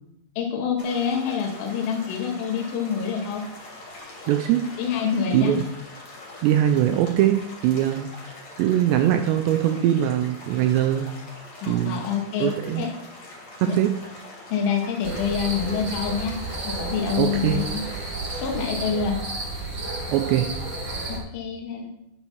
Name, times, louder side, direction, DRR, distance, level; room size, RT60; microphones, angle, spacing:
voice 1, 0.4-3.4 4.8-5.6 11.6-12.5 12.8-12.9 13.7-13.8 14.5-16.4 16.7-17.8 18.4-19.2 21.1-21.9, left 7 dB, 85° left, 2 dB, 4.3 m, -26 dB
sound 1, 0.8-18.7, left 2 dB, 40° left, 3.4 m, -43 dB
voice 2, 4.3-4.7 5.3-5.6 6.4-11.1 11.7-12.0 12.4-12.9 13.6-14.0 17.2-17.6 20.1-20.6, right 11 dB, 85° right, 7 dB, 2.5 m, -22 dB
sound 2, 15.0-21.2, right 2 dB, 40° right, 1.9 m, -32 dB
11.5 x 8.6 x 4.7 m, 0.81 s
omnidirectional pair, 5.6 m